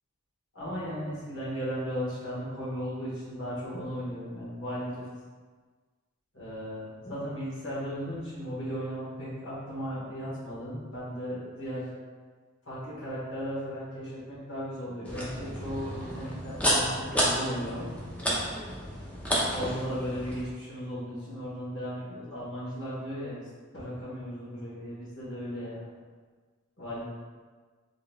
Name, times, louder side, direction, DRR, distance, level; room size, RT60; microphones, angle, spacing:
voice 1, 0.5-5.1 6.3-11.9 12.6-17.9 19.4-25.9 26.8-27.0, equal, 60° left, -10 dB, 1.4 m, -36 dB
sound 1, 15.1-20.4, equal, 5° left, 0.6 m, -31 dB
3.9 x 3.8 x 2.3 m, 1.5 s
head